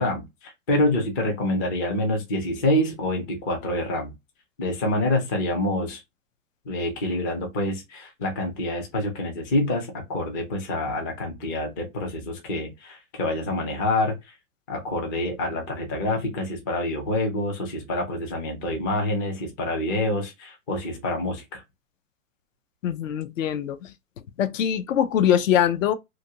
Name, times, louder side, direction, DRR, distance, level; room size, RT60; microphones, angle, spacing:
voice 1, 0.0-4.1 4.6-6.0 6.7-14.1 14.7-21.6, left 1 dB, 15° left, 0.4 m, -27 dB
voice 2, 22.8-23.9 24.4-25.9, left 9 dB, 65° left, 0.6 m, -23 dB
2.6 x 2.5 x 2.7 m
hypercardioid pair, 145°, 41 cm